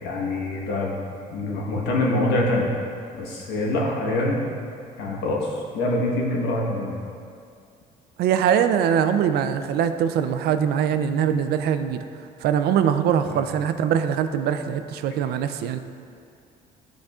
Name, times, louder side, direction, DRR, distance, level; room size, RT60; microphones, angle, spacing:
voice 1, 0.0-0.9 1.3-2.7 3.1-4.4 5.0-7.0 13.2-13.4, left 1 dB, 85° left, -2 dB, 1.3 m, -25 dB
voice 2, 8.2-12.1 12.4-15.8, right 8 dB, 70° right, 10 dB, 0.4 m, -22 dB
10.5 x 5.0 x 2.4 m, 2.4 s
cardioid pair, 110°, 17 cm